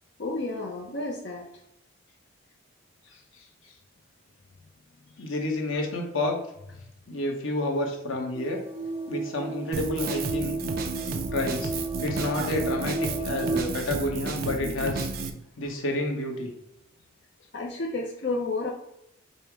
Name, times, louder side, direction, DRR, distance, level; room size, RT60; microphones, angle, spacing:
voice 1, 0.2-1.5 5.2-5.3 17.5-18.7, left 2 dB, 60° left, 0 dB, 0.6 m, -31 dB
voice 2, 5.2-6.4 7.1-8.6 9.1-10.6 11.3-11.7 12.0-15.1 15.6-16.5, left 2 dB, 85° left, 2 dB, 1.0 m, -29 dB
sound 1, 8.3-13.6, right 3 dB, 10° right, 0.7 m, -33 dB
Drum kit, 9.7-15.3, right 4 dB, 50° right, 0.5 m, -32 dB
5.4 x 2.1 x 4.5 m, 0.81 s
head